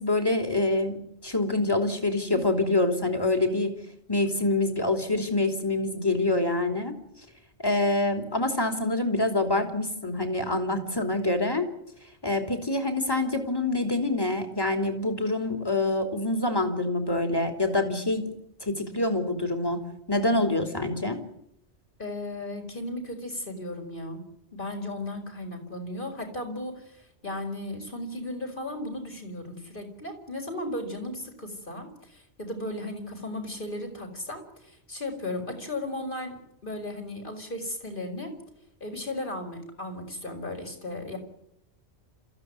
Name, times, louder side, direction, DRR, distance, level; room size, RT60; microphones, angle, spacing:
voice 1, 0.0-3.7 4.1-7.0 7.6-11.7 12.2-18.3 18.6-19.8 20.1-21.2, left 2 dB, 20° left, 5 dB, 3.1 m, -26 dB
voice 2, 22.0-24.2 24.5-36.3 36.6-38.3 38.8-41.2, left 1 dB, 50° left, 3 dB, 5.0 m, -35 dB
27.5 x 15.0 x 9.6 m, 0.79 s
omnidirectional pair, 1.1 m